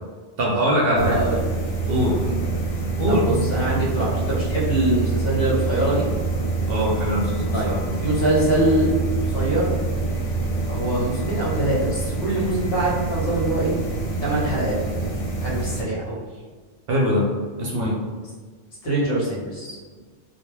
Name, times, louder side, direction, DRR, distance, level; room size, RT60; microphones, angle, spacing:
voice 1, 0.4-1.2 1.9-2.2 3.0-3.4 3.8-3.9 6.7-7.8 16.9-17.2 17.6-17.9, equal, 60° right, -4 dB, 0.7 m, -22 dB
voice 2, 0.9-1.4 2.2-2.4 3.1-6.1 7.5-7.7 8.0-8.9 9.3-9.7 10.7-13.8 14.2-15.1 15.4-16.2 18.8-19.8, right 1 dB, 55° left, -7 dB, 1.0 m, -23 dB
sound 1, 1.0-15.8, right 3 dB, 75° left, 0.9 m, -26 dB
2.2 x 2.2 x 3.1 m, 1.5 s
omnidirectional pair, 1.2 m